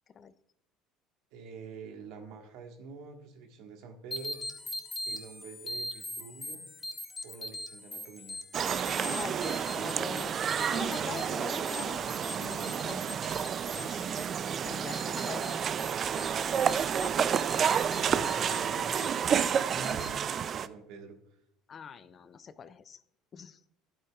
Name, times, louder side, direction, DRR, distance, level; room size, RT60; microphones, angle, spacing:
voice 1, 1.3-4.4 5.0-6.6 7.2-8.4 17.9-19.2 19.7-21.2, right 4 dB, 70° right, 3 dB, 1.6 m, -46 dB
sound 1, 4.1-20.1, left 1 dB, 20° left, 1.7 m, -43 dB
sound 2, 8.5-20.7, right 8 dB, 45° right, 0.4 m, -30 dB
voice 2, 9.0-13.1 13.4-13.5 13.8-14.1 14.6-15.6 18.2-18.4 20.0-20.1 21.7-23.0 23.3-23.6, left 6 dB, 40° left, 14 dB, 0.5 m, -44 dB
11.5 x 8.7 x 2.4 m, 0.76 s
hypercardioid pair, 80°, 0 cm